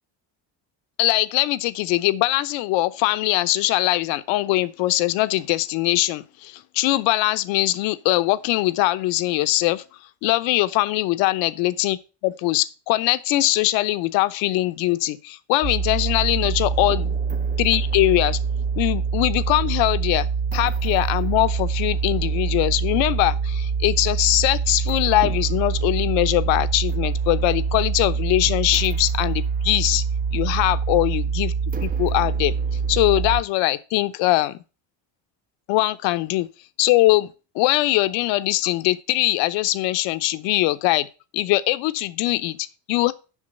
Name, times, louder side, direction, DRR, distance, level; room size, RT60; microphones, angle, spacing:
voice 1, 1.0-9.8 10.2-17.2 17.6-18.4 18.8-20.3 20.5-30.0 30.3-31.5 31.8-32.5 32.9-34.6 35.7-36.5 36.8-41.1 41.3-43.1, left 17 dB, 80° left, 0.9 m, -21 dB
sound 1, 15.6-33.4, right 5 dB, 20° right, 0.5 m, -25 dB
7.4 x 6.0 x 6.6 m
supercardioid pair, 100°, 45 cm